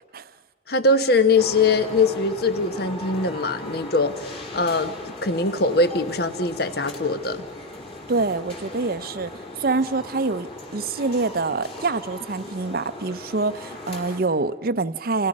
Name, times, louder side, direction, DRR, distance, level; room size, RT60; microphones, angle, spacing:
voice 1, 0.7-7.5, left 3 dB, 55° left, 1.3 m, -22 dB
sound 1, 1.4-14.2, left 1 dB, 30° left, 3.0 m, -38 dB
voice 2, 8.1-15.3, right 3 dB, 50° right, 0.7 m, -26 dB
29.5 x 28.5 x 5.4 m
head